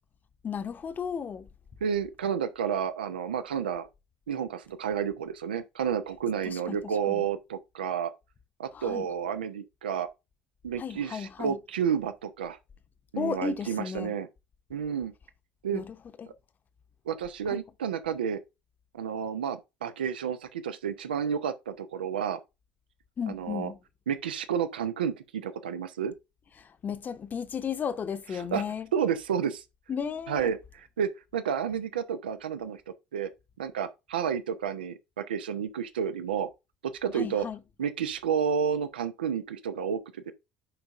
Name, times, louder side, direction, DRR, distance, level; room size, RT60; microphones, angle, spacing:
voice 1, 0.4-1.5 6.4-7.2 8.7-9.1 10.8-11.6 13.2-14.2 15.7-16.3 17.5-17.6 23.2-23.8 26.6-28.9 29.9-30.5 37.1-37.6, left 7 dB, 35° left, 0.9 m, -34 dB
voice 2, 1.8-3.9 4.3-8.1 8.6-10.1 10.6-12.6 13.1-14.3 14.7-15.1 15.6-15.8 17.1-18.4 18.9-22.4 23.3-23.7 24.1-26.1 28.5-28.6 28.9-29.6 30.3-32.8 33.1-33.3 33.6-36.5 37.0-37.5 37.8-40.3, right 7 dB, 80° right, 0.8 m, -30 dB
10.0 x 4.9 x 2.6 m
hypercardioid pair, 65°, 5 cm